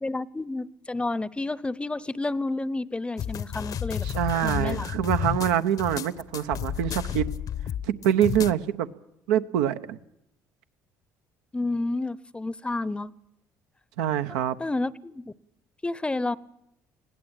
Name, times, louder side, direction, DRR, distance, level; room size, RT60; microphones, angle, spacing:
voice 1, 0.0-4.1 4.4-4.9 11.5-13.1 14.6-15.3 15.8-16.4, left 2 dB, 15° left, 21 dB, 0.7 m, -30 dB
sound 1, 3.2-8.5, left 9 dB, 55° left, 0.8 m, -31 dB
voice 2, 4.0-7.3 7.8-8.9 9.3-10.0 14.0-14.6, right 10 dB, 90° right, 9 dB, 0.9 m, -25 dB
21.0 x 16.0 x 8.9 m, 0.82 s
supercardioid pair, 80°, 8 cm